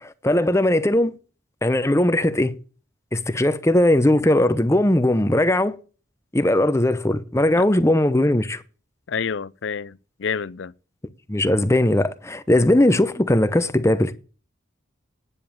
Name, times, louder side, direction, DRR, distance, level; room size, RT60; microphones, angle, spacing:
voice 1, 0.0-1.2 1.6-2.6 3.1-5.8 6.3-8.6 11.3-14.1, left 1 dB, 15° left, 0.8 m, -19 dB
voice 2, 9.1-10.7, left 6 dB, 70° left, 0.5 m, -28 dB
10.0 x 7.1 x 8.7 m
head